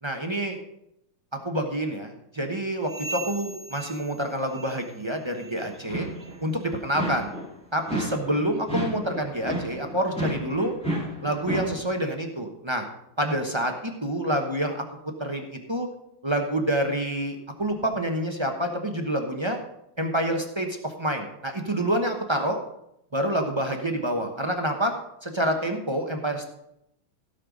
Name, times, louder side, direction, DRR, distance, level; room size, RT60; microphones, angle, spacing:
voice 1, 0.0-0.6 1.4-6.1 6.4-7.3 7.7-10.7 11.2-12.8 13.2-15.9 16.2-19.6 20.0-22.6 23.1-24.9 25.2-26.4, right 1 dB, 25° right, 3 dB, 0.6 m, -27 dB
sound 1, 2.8-5.0 5.3-5.7 6.1-6.4 7.0-7.1 7.8-7.9 8.7-8.8, right 2 dB, 50° left, 2.2 m, -40 dB
sound 2, 5.7-6.4 6.9-7.5 7.9-11.8, right 1 dB, 5° left, 2.0 m, -31 dB
16.5 x 5.5 x 5.2 m, 0.80 s
omnidirectional pair, 2.2 m